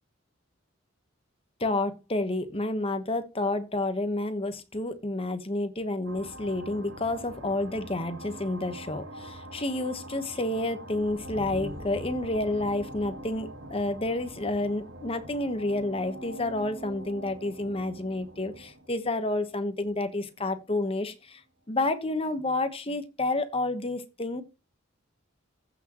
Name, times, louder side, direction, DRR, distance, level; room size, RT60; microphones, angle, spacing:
voice 1, 1.6-21.4 21.7-24.4, left 2 dB, 30° left, 1.1 m, -30 dB
sound 1, 6.0-20.2, right 1 dB, 65° right, 1.5 m, -43 dB
15.0 x 6.1 x 3.0 m
head